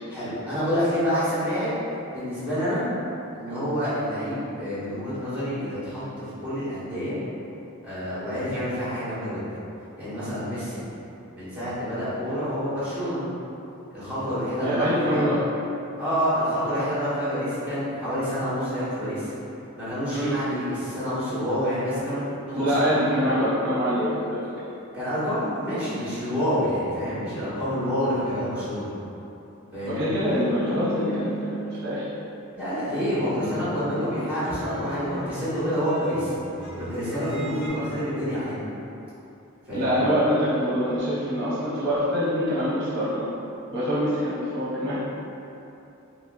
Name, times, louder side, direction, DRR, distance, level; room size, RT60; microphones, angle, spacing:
voice 1, 0.1-1.7 2.1-2.9 3.3-6.0 6.4-7.2 7.8-9.4 10.0-10.9 11.3-13.3 13.9-15.2 16.0-19.3 19.7-23.0 24.9-28.9 29.7-30.1 32.5-36.3 36.8-38.5 39.7-40.1, equal, 5° right, -12 dB, 1.2 m, -28 dB
voice 2, 14.6-15.4 20.1-20.3 22.5-24.4 30.0-32.1 39.7-43.3 43.7-45.0, equal, 50° right, -11 dB, 0.7 m, -24 dB
sound 1, 29.9-32.4 32.7-37.7, equal, 60° left, 1.2 m, -38 dB
3.0 x 3.0 x 2.5 m, 2.8 s
head